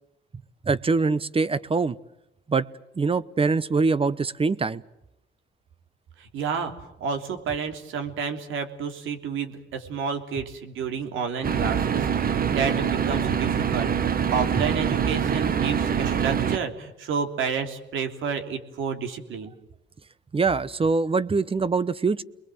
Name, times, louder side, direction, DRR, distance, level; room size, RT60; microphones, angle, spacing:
voice 1, 0.6-2.0 2.5-2.7 3.0-4.8 20.3-22.2, right 4 dB, 30° right, 18 dB, 0.9 m, -23 dB
voice 2, 6.2-6.7 7.0-19.5, right 6 dB, 80° right, 6 dB, 3.3 m, -30 dB
sound 1, 11.4-16.6, right 7 dB, 50° right, 1.3 m, -24 dB
29.5 x 21.5 x 7.9 m, 0.89 s
cardioid pair, 90°, 20 cm